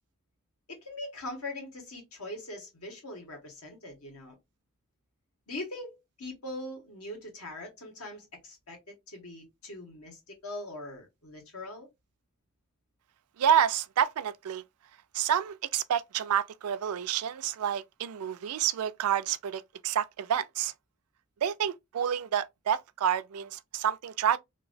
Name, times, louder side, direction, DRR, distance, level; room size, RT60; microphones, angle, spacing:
voice 1, 0.7-4.4 5.5-11.9, left 1 dB, 75° left, 1.5 m, -42 dB
voice 2, 13.4-14.6 15.1-20.7 21.4-24.4, right 9 dB, 80° right, 0.4 m, -29 dB
2.9 x 2.7 x 2.5 m
head